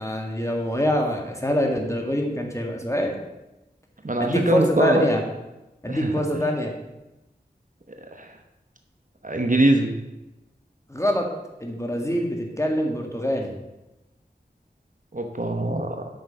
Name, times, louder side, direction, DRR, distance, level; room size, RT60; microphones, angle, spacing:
voice 1, 0.0-3.1 4.2-5.2 5.8-6.7 10.9-11.3 11.6-13.5, equal, 15° left, 1 dB, 1.8 m, -24 dB
voice 2, 4.0-5.1 5.9-6.5 8.1-8.4 9.2-10.0 15.1-16.1, right 1 dB, 45° right, 4 dB, 1.0 m, -23 dB
8.4 x 6.6 x 5.5 m, 0.98 s
wide cardioid pair, 40°, 18 cm